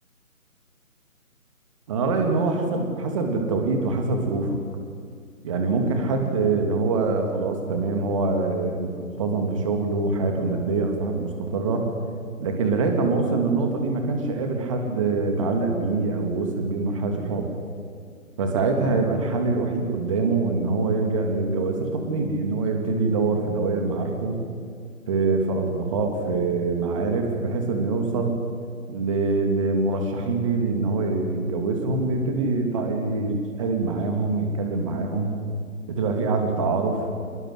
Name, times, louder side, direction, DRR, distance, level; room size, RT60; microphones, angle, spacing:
voice 1, 1.9-4.6 5.4-11.9 12.4-17.5 18.4-24.4 25.1-28.4 28.9-35.3 35.9-37.0, right 3 dB, 20° right, 3 dB, 2.8 m, -24 dB
26.5 x 22.0 x 8.0 m, 2.1 s
figure-of-eight pair, 155°, 44 cm